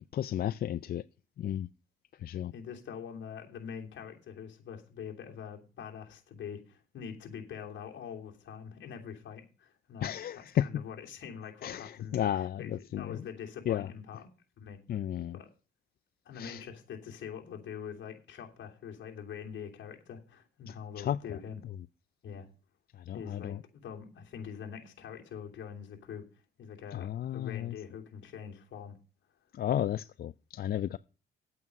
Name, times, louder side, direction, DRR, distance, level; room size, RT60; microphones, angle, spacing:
voice 1, 0.1-1.0 1.4-1.7 2.2-2.5 10.0-10.7 11.6-13.1 13.7-13.9 14.9-15.4 16.4-16.6 20.7-21.2 23.1-23.6 26.9-27.7 29.5-31.0, left 11 dB, 50° left, 0.4 m, -33 dB
voice 2, 2.5-14.3 14.6-14.8 15.3-15.5 16.2-21.6 22.2-22.5 23.1-26.2 26.6-29.0, left 7 dB, 70° left, 3.1 m, -44 dB
9.5 x 8.5 x 5.3 m
cardioid pair, 90°, 20 cm